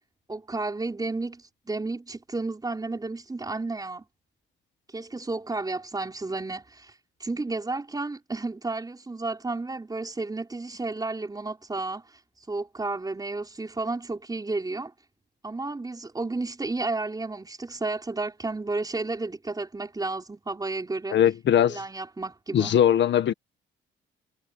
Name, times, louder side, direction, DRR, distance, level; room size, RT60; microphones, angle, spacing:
voice 1, 0.3-4.0 4.9-6.9 7.2-12.2 12.5-14.9 15.4-21.2 21.7-22.7, right 3 dB, 20° right, 4.7 m, -32 dB
voice 2, 21.1-21.8 22.5-23.3, left 10 dB, 65° left, 1.7 m, -20 dB
cardioid pair, 90°, 20 cm